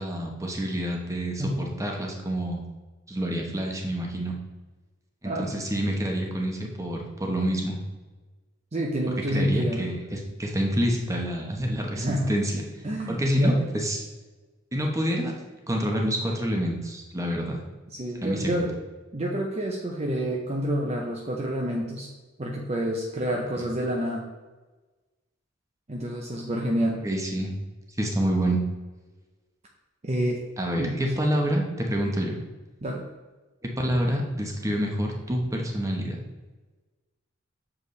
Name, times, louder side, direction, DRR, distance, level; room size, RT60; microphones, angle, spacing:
voice 1, 0.0-2.6 3.1-4.3 5.2-7.8 9.3-12.6 13.1-14.0 14.7-15.3 15.7-17.6 18.2-18.6 23.3-23.4 27.0-27.5 28.0-28.6 30.6-32.4 33.8-36.2, equal, 15° right, 1 dB, 0.9 m, -27 dB
voice 2, 8.7-9.8 11.9-12.3 12.8-13.6 17.9-18.7 19.1-22.1 22.4-24.2 25.9-27.0 30.0-30.4 30.8-31.0 32.8-33.0, right 1 dB, 35° right, -1 dB, 0.7 m, -28 dB
6.7 x 4.9 x 3.1 m, 1.2 s
head